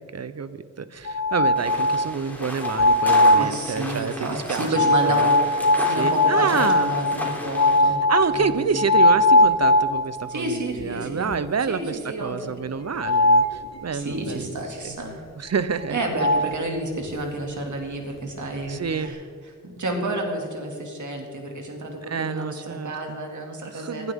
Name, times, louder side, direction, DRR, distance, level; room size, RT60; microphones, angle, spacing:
voice 1, 0.0-5.3 6.0-6.9 8.1-15.0 15.4-16.0 18.7-19.1 22.1-23.2 23.7-24.1, right 6 dB, 60° right, 14 dB, 0.8 m, -28 dB
sound 1, 1.1-2.1 2.6-3.5 4.7-10.4 10.8-10.9 11.3-11.4 13.0-13.6 15.8-15.9 16.2-16.5, left 1 dB, 60° left, 0.8 m, -19 dB
sound 2, 1.6-7.8, equal, 5° left, 3.4 m, -34 dB
voice 2, 3.3-5.3 5.8-8.0 8.3-8.8 10.3-11.3 11.7-12.4 13.0-13.2 13.9-15.3 15.9-19.2 19.8-22.6 22.8-24.1, right 2 dB, 80° right, 2 dB, 2.5 m, -30 dB
20.0 x 12.0 x 3.7 m, 2.2 s
cardioid pair, 55°, 29 cm